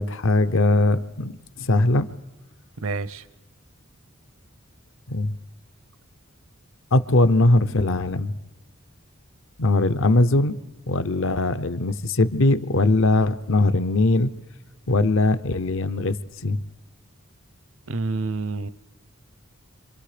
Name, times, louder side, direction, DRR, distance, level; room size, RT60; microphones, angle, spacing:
voice 1, 0.0-1.3 1.6-2.1 5.1-5.4 6.9-8.3 9.6-10.5 10.9-14.3 14.9-16.2 16.4-16.7, left 2 dB, 65° left, 13 dB, 0.8 m, -20 dB
voice 2, 2.8-3.3 17.9-18.7, right 3 dB, 70° right, 16 dB, 0.7 m, -28 dB
27.5 x 26.5 x 5.1 m, 1.1 s
head